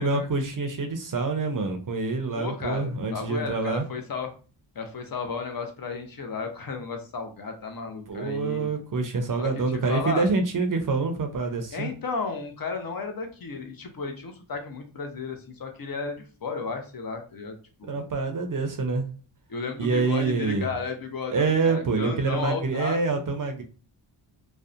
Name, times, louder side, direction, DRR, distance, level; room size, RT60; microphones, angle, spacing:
voice 1, 0.0-3.8 8.1-11.9 17.9-19.1 19.8-20.7 21.3-23.6, right 3 dB, 45° right, 5 dB, 0.5 m, -26 dB
voice 2, 2.3-4.3 4.8-8.7 9.4-9.5 9.9-10.3 11.7-18.0 19.5-23.2, left 4 dB, 50° left, 5 dB, 0.6 m, -33 dB
2.7 x 2.0 x 2.4 m, 0.36 s
wide cardioid pair, 80°, 46 cm